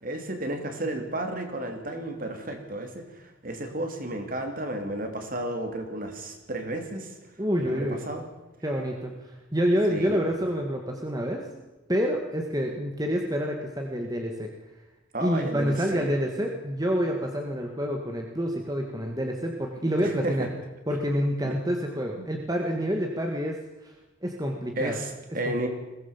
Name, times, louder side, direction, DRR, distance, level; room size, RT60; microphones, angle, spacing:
voice 1, 0.0-7.2 7.6-8.2 9.9-10.2 15.1-16.1 20.0-20.5 21.4-21.6 22.2-22.3 24.8-25.7, right 1 dB, 40° right, 5 dB, 2.9 m, -33 dB
voice 2, 7.4-8.0 8.6-11.4 11.9-14.5 15.2-20.5 20.9-23.9 24.2-25.0 25.4-25.7, equal, 20° right, 2 dB, 1.8 m, -28 dB
22.0 x 17.0 x 7.2 m, 1.1 s
head